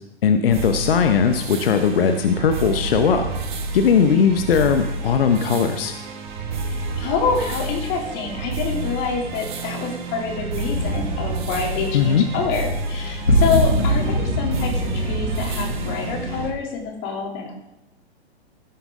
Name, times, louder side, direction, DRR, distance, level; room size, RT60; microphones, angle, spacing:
voice 1, 0.2-3.3 3.7-5.9 11.9-12.2, left 6 dB, 60° left, 6 dB, 1.0 m, -18 dB
sound 1, 0.5-16.5, right 3 dB, 45° right, 1.7 m, -30 dB
voice 2, 6.6-17.5, left 5 dB, 35° left, -1 dB, 3.0 m, -26 dB
sound 2, 10.7-16.4, equal, 85° left, 2.3 m, -24 dB
16.5 x 7.1 x 3.7 m, 0.90 s
figure-of-eight pair, 110°, 33 cm